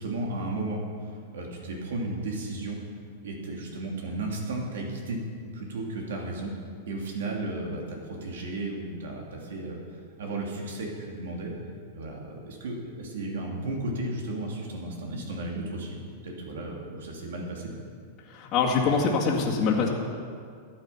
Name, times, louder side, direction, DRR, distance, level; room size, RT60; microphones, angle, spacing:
voice 1, 0.0-2.8 3.2-5.2 5.5-6.5 6.9-9.8 10.2-11.5 11.9-16.0 16.2-17.7, right 2 dB, 80° right, 0 dB, 2.8 m, -34 dB
voice 2, 18.3-19.9, left 5 dB, 45° left, -4 dB, 2.0 m, -24 dB
13.5 x 8.9 x 5.8 m, 2.2 s
hypercardioid pair, 120°, 0 cm